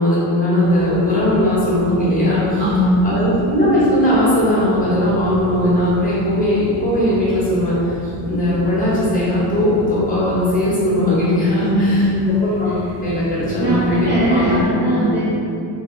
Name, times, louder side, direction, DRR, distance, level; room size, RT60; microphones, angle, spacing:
voice 1, 0.0-2.6 3.0-14.6 14.8-15.1, left 1 dB, 15° left, -9 dB, 1.2 m, -18 dB
sound 1, 0.6-14.7, right 2 dB, 80° right, 0.5 m, -34 dB
voice 2, 2.6-3.1 11.7-12.4 13.6-15.3, equal, 25° right, -8 dB, 0.4 m, -19 dB
3.5 x 2.4 x 3.7 m, 2.7 s
cardioid pair, 140°, 49 cm